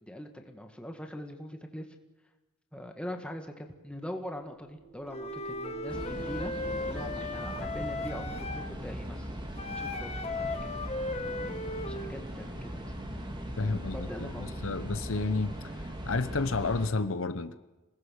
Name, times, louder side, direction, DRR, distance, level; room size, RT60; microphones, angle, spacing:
voice 1, 0.0-1.9 2.7-9.3 9.7-10.7 11.2-12.9 13.6-14.6, equal, 5° left, 4 dB, 2.0 m, -42 dB
sound 1, 3.7-8.7, right 7 dB, 85° right, 7.1 m, -49 dB
Wind instrument woodwind instrument, 5.1-8.7 9.6-12.1, left 2 dB, 30° left, 1.3 m, -36 dB
sound 2, 5.9-16.9, equal, 20° right, 2.8 m, -39 dB
voice 2, 13.6-15.5 16.1-17.5, left 3 dB, 65° left, 12 dB, 0.9 m, -31 dB
27.0 x 19.5 x 6.6 m, 1.1 s
head